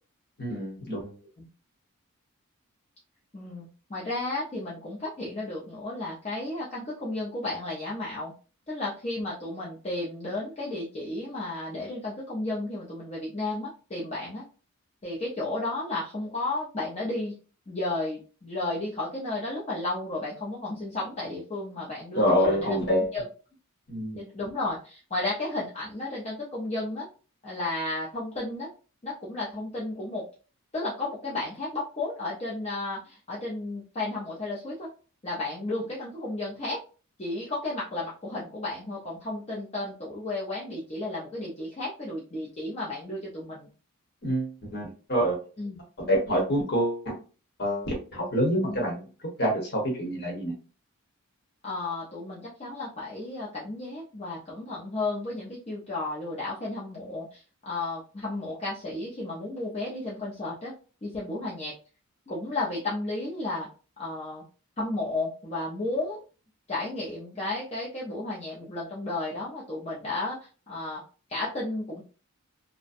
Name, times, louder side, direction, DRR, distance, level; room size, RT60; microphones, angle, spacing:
voice 1, 0.4-1.1 22.1-23.1 23.9-24.2 44.2-45.3 46.1-47.1 47.6-49.0 49.4-50.5, equal, 45° left, -1 dB, 0.9 m, -26 dB
voice 2, 3.3-8.3 8.7-14.4 15.0-17.3 17.7-22.8 23.1-23.3 24.2-27.1 27.4-28.7 29.0-30.2 30.7-34.9 35.2-36.8 37.2-43.7 45.6-45.8 48.7-48.9 51.6-60.7 61.0-61.7 62.3-63.7 64.0-64.4 64.8-66.2 66.7-70.4 70.7-71.0 71.3-72.0, left 2 dB, 30° left, -5 dB, 0.4 m, -33 dB
2.5 x 2.1 x 2.4 m, 0.37 s
head